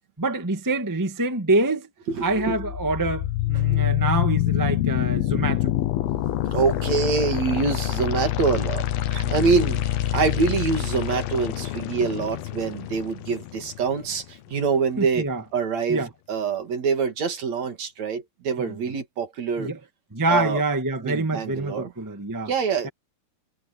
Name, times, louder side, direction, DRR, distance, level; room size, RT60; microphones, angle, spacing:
voice 1, 0.2-1.9 2.2-5.7 9.2-9.4 15.0-15.4 15.9-16.1 18.6-18.8 19.6-19.8 20.1-22.5 22.8-22.9, right 2 dB, 15° right, 0.7 m, -26 dB
voice 2, 2.1-2.6 3.7-3.9 6.5-19.7 20.3-20.6 21.0-21.9 22.5-22.9, right 5 dB, 50° right, 3.3 m, -25 dB
sound 1, 2.3-14.3, left 14 dB, 85° left, 3.0 m, -26 dB
Female speech woman speaking, 10.3-11.0 12.0-13.5 14.1-14.9, equal, 60° left, 9.5 m, -52 dB
omnidirectional pair, 4.3 m